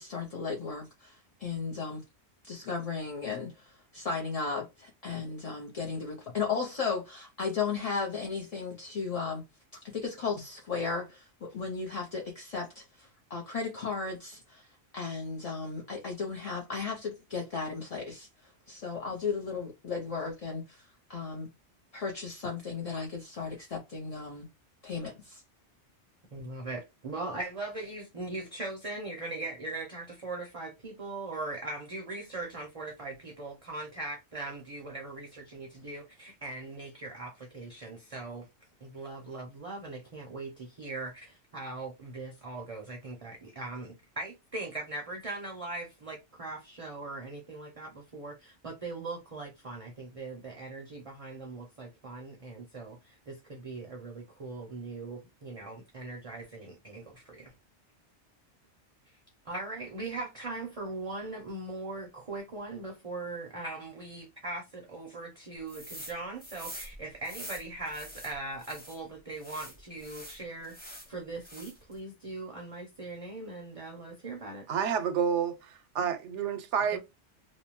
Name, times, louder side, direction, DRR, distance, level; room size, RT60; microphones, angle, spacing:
voice 1, 0.0-2.0 2.4-9.4 9.8-14.7 14.9-21.5 21.9-24.5 24.8-25.4, left 5 dB, 45° left, 0.5 m, -35 dB
voice 2, 26.3-38.5 38.8-57.5 59.5-74.7 76.9-77.0, right 2 dB, 40° right, 0.5 m, -40 dB
sound 1, 65.7-66.1 66.4-69.0 69.4-71.1 71.4-71.9, equal, 10° left, 0.8 m, -45 dB
voice 3, 74.7-77.0, right 7 dB, 85° right, 0.9 m, -29 dB
2.6 x 2.1 x 2.9 m
omnidirectional pair, 1.2 m